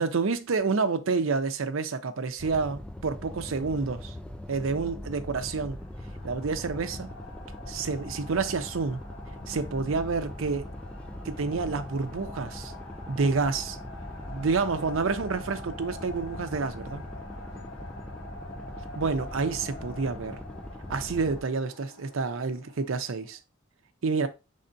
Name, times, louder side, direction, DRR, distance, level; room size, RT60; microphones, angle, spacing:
voice 1, 0.0-4.1 4.5-5.8 6.2-7.1 7.7-9.0 9.5-10.7 11.2-12.7 13.1-13.8 14.3-17.0 19.0-20.4 20.9-23.4 24.0-24.3, right 4 dB, 75° right, 0.6 m, -28 dB
sound 1, 2.4-21.4, left 1 dB, 5° left, 0.3 m, -41 dB
sound 2, 5.7-23.4, left 2 dB, 80° left, 1.2 m, -46 dB
5.5 x 3.5 x 2.6 m
head